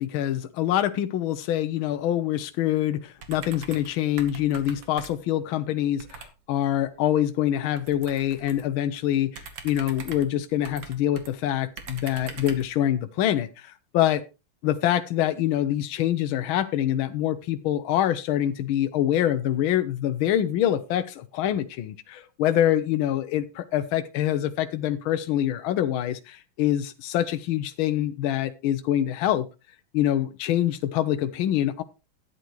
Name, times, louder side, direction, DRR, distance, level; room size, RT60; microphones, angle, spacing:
voice 1, 0.0-14.2 14.6-29.5 29.9-31.8, left 11 dB, 80° left, 9 dB, 1.5 m, -25 dB
sound 1, 3.2-5.3 6.0-6.3 7.7-8.7 9.3-11.3 11.8-12.7, right 5 dB, 65° right, 2.1 m, -42 dB
13.0 x 9.1 x 3.1 m, 0.27 s
omnidirectional pair, 2.3 m